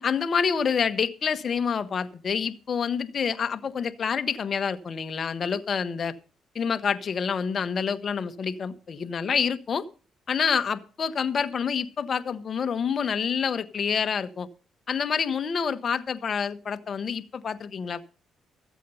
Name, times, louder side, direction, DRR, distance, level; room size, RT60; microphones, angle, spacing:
voice 1, 0.0-6.1 6.5-9.8 10.3-14.5 14.9-18.1, left 6 dB, 50° left, 11 dB, 1.0 m, -27 dB
13.5 x 8.3 x 5.5 m, 0.37 s
cardioid pair, 90°, 0 cm